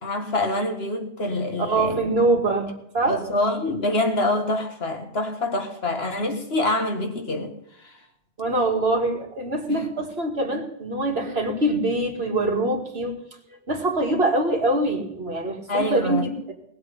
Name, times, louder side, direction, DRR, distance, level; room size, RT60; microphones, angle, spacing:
voice 1, 0.0-2.0 3.1-7.5 7.8-8.0 9.7-9.8 15.7-16.3, left 1 dB, 70° left, 2.0 m, -25 dB
voice 2, 1.6-3.2 8.4-13.1 13.7-16.5, right 2 dB, 70° right, 2.5 m, -24 dB
19.5 x 7.9 x 5.5 m
omnidirectional pair, 1.1 m